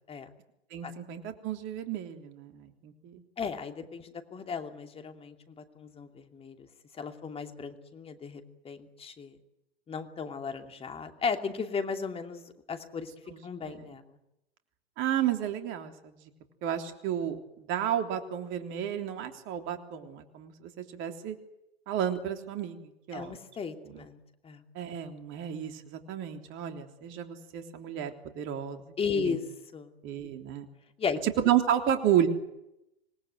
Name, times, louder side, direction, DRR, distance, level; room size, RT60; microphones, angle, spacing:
voice 1, 0.7-3.2 13.3-13.4 13.7-13.9 15.0-16.1 16.6-21.4 21.9-23.3 23.8-24.1 24.8-28.8 29.1-29.4 30.0-30.7 31.2-32.3, right 10 dB, 40° right, 6 dB, 3.5 m, -32 dB
voice 2, 3.4-6.7 6.9-9.3 9.9-13.1 13.4-14.0 23.1-24.2 24.4-24.6 29.0-29.4 29.7-29.9 31.0-31.2, left 5 dB, 20° left, 6 dB, 2.7 m, -35 dB
26.5 x 19.5 x 9.3 m, 0.87 s
hypercardioid pair, 105°, 31 cm